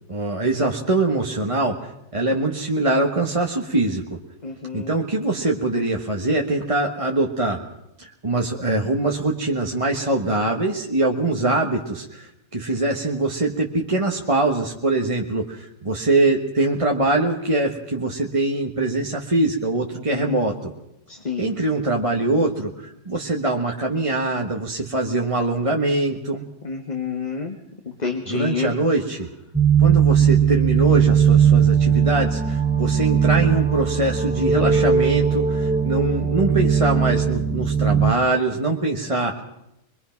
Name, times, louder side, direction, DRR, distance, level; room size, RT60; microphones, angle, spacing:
voice 1, 0.1-4.2 4.7-7.6 8.0-20.7 21.4-26.4 28.3-29.3 29.8-39.4, right 2 dB, 25° right, 0 dB, 1.6 m, -23 dB
voice 2, 4.4-4.9 20.2-20.4 21.3-21.5 26.6-27.6 28.0-28.7, left 5 dB, 30° left, 2 dB, 1.6 m, -28 dB
sound 1, 29.5-38.1, right 7 dB, 5° right, 0.7 m, -18 dB
24.0 x 22.5 x 6.0 m, 0.84 s
omnidirectional pair, 1.5 m